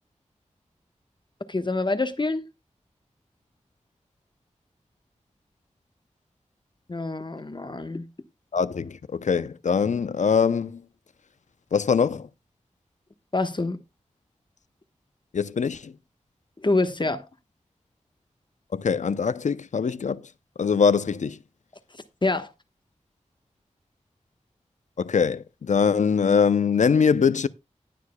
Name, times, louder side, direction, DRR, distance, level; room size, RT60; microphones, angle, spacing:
voice 1, 1.5-2.5 6.9-8.1 13.3-13.8 16.6-17.3 22.2-22.5, left 2 dB, 40° left, 1.2 m, -26 dB
voice 2, 8.5-10.8 11.7-12.3 15.3-15.9 18.7-20.2 20.6-21.4 25.0-27.5, left 6 dB, 75° left, 0.6 m, -22 dB
19.5 x 6.6 x 2.2 m
cardioid pair, 45°, 13 cm